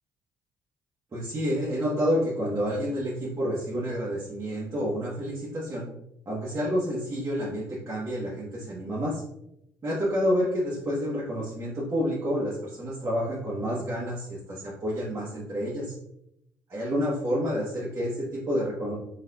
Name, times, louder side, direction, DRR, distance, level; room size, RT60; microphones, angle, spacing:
voice 1, 1.1-5.8 6.2-9.2 9.8-15.9 16.7-18.9, equal, 35° right, -8 dB, 1.5 m, -29 dB
4.0 x 4.0 x 2.7 m, 0.80 s
hypercardioid pair, 55°, 8 cm